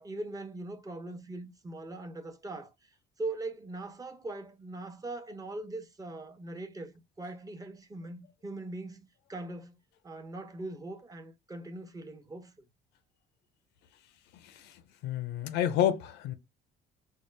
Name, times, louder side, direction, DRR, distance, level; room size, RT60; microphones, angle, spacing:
voice 1, 0.0-2.9 3.2-9.8 10.0-12.6, right 2 dB, 20° right, 0.9 m, -41 dB
voice 2, 14.4-14.7 15.0-16.3, left 10 dB, 85° left, 0.7 m, -29 dB
4.5 x 2.2 x 3.3 m
cardioid pair, 110°, 17 cm